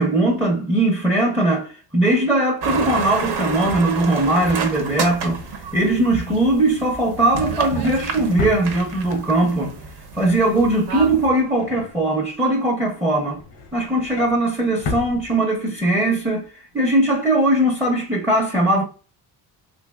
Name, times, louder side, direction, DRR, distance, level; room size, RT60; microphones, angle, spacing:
voice 1, 0.0-5.4 5.7-9.8 10.2-13.4 13.7-18.8, right 1 dB, 5° right, 0.6 m, -20 dB
sound 1, 2.6-11.3, right 5 dB, 65° right, 0.8 m, -29 dB
Drawer open or close, 4.5-9.3 9.7-10.0 10.3-12.5 12.9-15.9 16.3-16.5 16.7-16.8, left 4 dB, 85° left, 0.8 m, -36 dB
4.0 x 2.8 x 2.2 m
cardioid pair, 120°, 41 cm